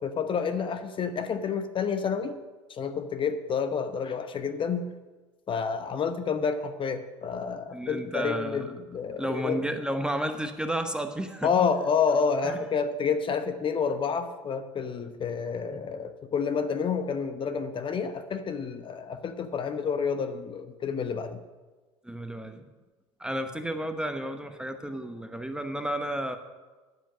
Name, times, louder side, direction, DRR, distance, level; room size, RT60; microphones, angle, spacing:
voice 1, 0.0-2.4 2.7-4.9 5.5-9.6 11.4-21.4, left 6 dB, 30° left, 9 dB, 1.0 m, -29 dB
voice 2, 7.7-8.6 9.2-11.5 12.4-12.6 15.7-15.8 22.0-22.6 23.2-26.4, right 1 dB, 5° right, 7 dB, 0.9 m, -32 dB
10.5 x 7.4 x 6.5 m, 1.3 s
hypercardioid pair, 75°, 16 cm